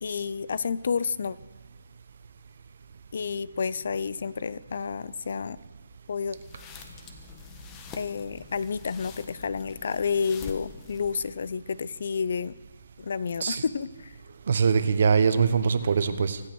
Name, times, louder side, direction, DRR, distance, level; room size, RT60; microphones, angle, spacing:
voice 1, 0.0-1.4 3.1-5.6 6.1-6.4 7.9-12.5 13.0-14.2, left 5 dB, 55° left, 18 dB, 0.6 m, -30 dB
sound 1, 6.3-11.5, left 6 dB, 20° left, 1.2 m, -46 dB
voice 2, 14.5-16.4, right 5 dB, 55° right, 11 dB, 1.2 m, -22 dB
24.5 x 8.2 x 6.2 m, 1.3 s
hypercardioid pair, 160°, 0 cm